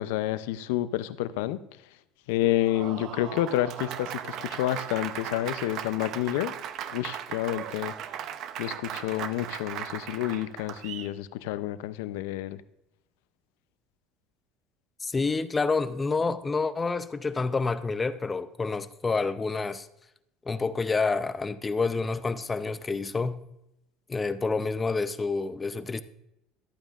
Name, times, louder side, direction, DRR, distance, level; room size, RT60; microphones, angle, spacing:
voice 1, 0.0-1.6 2.3-6.5 6.9-7.9 8.6-12.6, left 14 dB, 85° left, 0.5 m, -29 dB
Applause, 2.4-11.1, right 9 dB, 55° right, 0.6 m, -37 dB
voice 2, 15.0-19.9 20.5-23.4 24.1-26.0, left 4 dB, 20° left, 0.6 m, -28 dB
13.5 x 8.9 x 2.4 m
supercardioid pair, 105°, 0 cm